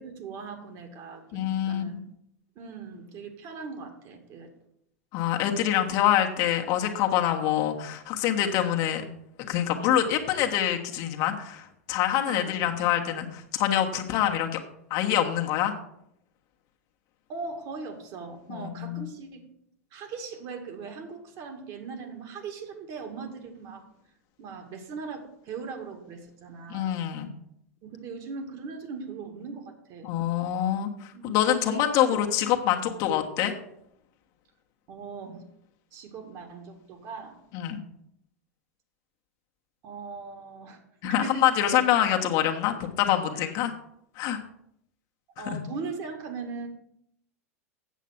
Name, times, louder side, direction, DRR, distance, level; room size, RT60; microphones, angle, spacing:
voice 1, 0.0-2.0 2.6-4.5 12.2-12.9 17.3-19.4 19.9-23.8 24.4-26.9 27.8-30.1 31.1-32.2 34.9-35.4 35.9-37.4 39.8-41.8 43.3-43.5 45.4-46.7, right 4 dB, 45° right, 4 dB, 2.1 m, -39 dB
voice 2, 1.3-2.0 5.1-9.0 9.4-14.6 14.9-15.7 18.5-19.0 26.7-27.3 30.0-33.5 37.5-37.8 41.0-43.7 44.2-44.4 45.4-45.6, left 11 dB, 50° left, 3 dB, 1.3 m, -25 dB
8.3 x 7.3 x 5.9 m, 0.75 s
hypercardioid pair, 95°, 8 cm